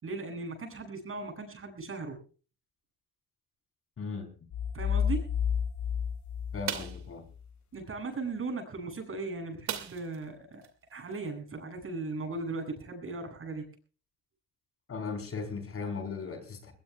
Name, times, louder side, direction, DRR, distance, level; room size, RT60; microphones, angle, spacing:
voice 1, 0.0-2.2 4.7-5.2 7.7-13.6, right 3 dB, 45° right, 5 dB, 7.9 m, -37 dB
voice 2, 4.0-4.3 6.5-7.2 14.9-16.7, left 4 dB, 50° left, 7 dB, 4.4 m, -37 dB
sound 1, 4.5-7.4, left 8 dB, 65° left, 1.2 m, -31 dB
sound 2, 6.7-7.1 9.7-10.2 10.6-10.7 11.1-11.3, right 9 dB, 65° right, 2.4 m, -36 dB
21.0 x 20.5 x 2.4 m, 0.37 s
cardioid pair, 90°, 30 cm